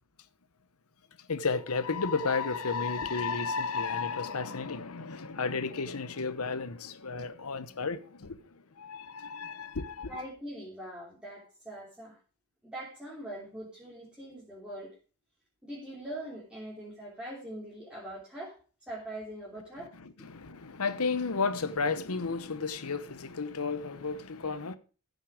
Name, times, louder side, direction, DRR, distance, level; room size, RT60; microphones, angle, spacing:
voice 1, 1.2-10.2 20.0-24.8, left 4 dB, 75° left, 1.0 m, -33 dB
voice 2, 10.1-12.2 12.6-14.9 15.6-18.5 18.8-19.9, right 1 dB, 5° right, 3.4 m, -42 dB
15.0 x 6.5 x 4.8 m
head